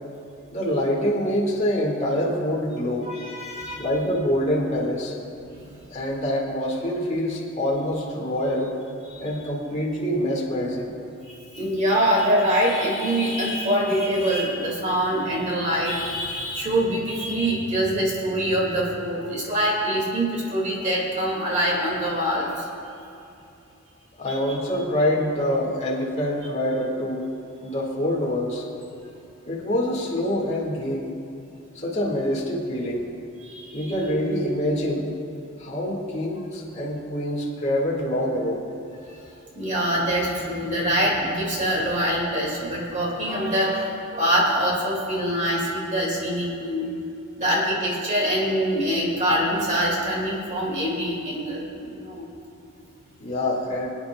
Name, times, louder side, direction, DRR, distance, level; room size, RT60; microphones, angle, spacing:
voice 1, 0.5-3.1 3.8-5.1 5.9-8.7 9.2-11.0 24.2-27.2 27.6-28.6 29.5-31.1 31.8-33.0 33.7-35.1 35.6-38.6 53.2-53.9, equal, 35° left, -4 dB, 1.8 m, -25 dB
voice 2, 3.1-3.8 5.5-5.6 11.2-22.7 24.3-24.6 33.4-34.0 39.5-46.9 47.4-52.2, equal, 35° right, -3 dB, 2.1 m, -24 dB
26.0 x 8.9 x 2.3 m, 2.7 s
head